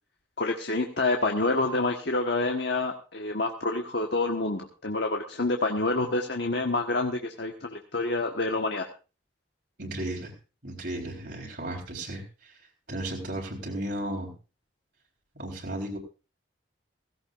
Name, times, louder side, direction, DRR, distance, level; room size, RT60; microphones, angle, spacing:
voice 1, 0.4-8.9, left 2 dB, 65° left, 3 dB, 1.3 m, -28 dB
voice 2, 9.8-10.3 10.6-12.6 12.9-14.3 15.3-16.0, right 1 dB, 55° right, -2 dB, 4.1 m, -34 dB
17.0 x 16.5 x 2.5 m, 0.33 s
head